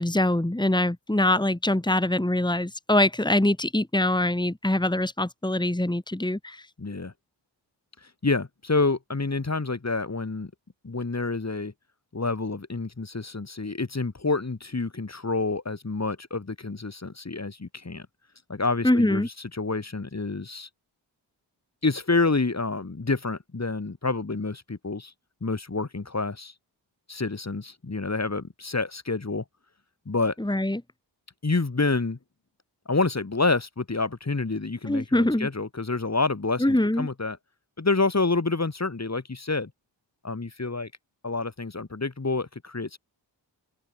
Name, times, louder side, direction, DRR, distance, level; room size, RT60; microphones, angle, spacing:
voice 1, 0.0-6.7 18.8-19.3 30.4-30.8 34.9-35.5 36.6-37.1, left 1 dB, 10° left, 3.0 m, -23 dB
voice 2, 6.8-7.1 8.2-10.5 10.8-11.7 12.1-18.1 18.5-20.7 21.8-25.1 25.4-26.5 27.1-29.4 30.0-30.3 31.4-32.2 32.9-37.4 37.8-39.7 40.2-40.9 41.2-43.0, left 3 dB, 35° left, 5.1 m, -28 dB
open air
cardioid pair, 55°, 44 cm